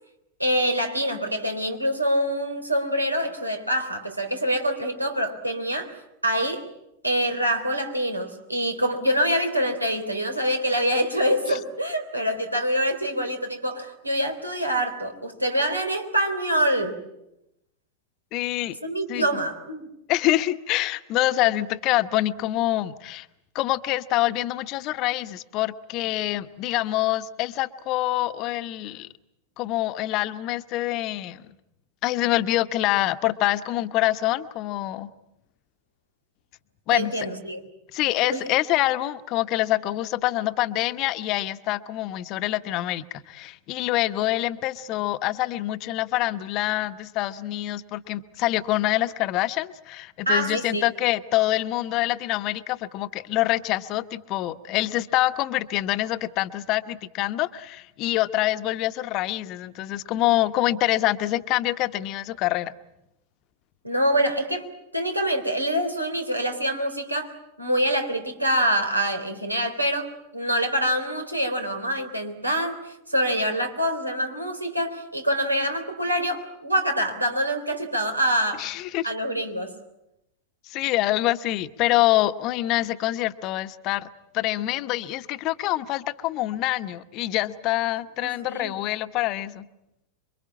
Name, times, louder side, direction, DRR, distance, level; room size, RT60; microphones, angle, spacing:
voice 1, 0.4-5.9 6.2-6.7 7.0-17.0 18.8-19.9 36.9-37.6 38.3-38.4 50.2-50.9 63.8-64.7 64.9-70.1 70.3-78.7 79.0-79.7 88.2-88.7, equal, 85° right, 6 dB, 3.4 m, -25 dB
voice 2, 18.3-18.8 19.1-19.3 20.1-23.3 23.5-29.1 29.6-31.5 32.0-35.1 36.9-37.1 37.9-62.7 78.6-79.1 80.7-84.1 84.3-89.7, left 16 dB, 40° left, 12 dB, 1.0 m, -25 dB
27.0 x 23.5 x 8.7 m, 0.87 s
figure-of-eight pair, 90°, 0 cm